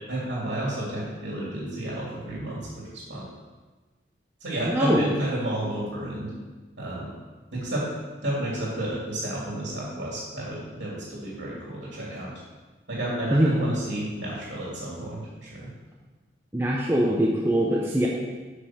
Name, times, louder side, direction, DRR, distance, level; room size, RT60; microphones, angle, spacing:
voice 1, 0.1-3.2 4.4-6.3 6.8-7.1 7.5-7.8 8.2-12.3 12.9-15.7, right 1 dB, 85° right, -5 dB, 2.6 m, -31 dB
voice 2, 4.7-5.0 13.3-13.5 16.5-18.1, equal, 15° right, -4 dB, 0.8 m, -22 dB
8.3 x 5.4 x 5.8 m, 1.3 s
head